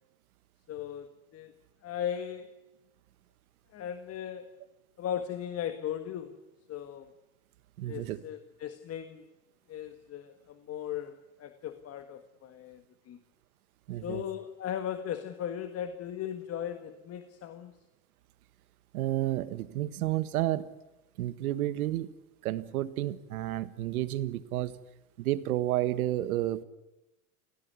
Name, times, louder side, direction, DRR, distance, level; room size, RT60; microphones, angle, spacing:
voice 1, 0.7-1.5 1.8-2.5 3.7-4.5 5.0-6.4 6.7-7.1 7.9-9.3 9.7-13.2 14.0-17.7, left 9 dB, 35° left, 9 dB, 1.7 m, -37 dB
voice 2, 7.8-8.2 13.9-14.2 18.9-20.7 21.2-22.1 22.4-24.8 25.2-26.6, right 14 dB, 80° right, 14 dB, 1.6 m, -31 dB
27.0 x 17.5 x 9.6 m, 0.99 s
supercardioid pair, 115°, 43 cm